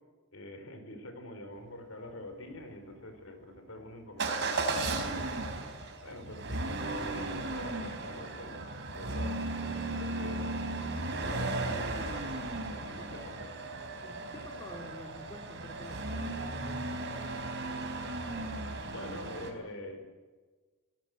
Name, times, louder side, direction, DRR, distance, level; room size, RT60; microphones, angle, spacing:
voice 1, 0.3-5.1 6.0-10.7 11.1-12.3 12.7-13.5 18.9-20.0, left 1 dB, 70° left, 7 dB, 4.8 m, -45 dB
Motor vehicle (road) / Engine starting / Accelerating revving vroom, 4.2-19.5, right 2 dB, 60° right, 4.1 m, -36 dB
voice 2, 12.9-13.3 14.0-17.2, equal, 20° left, 2 dB, 2.8 m, -48 dB
25.5 x 17.5 x 8.1 m, 1.4 s
head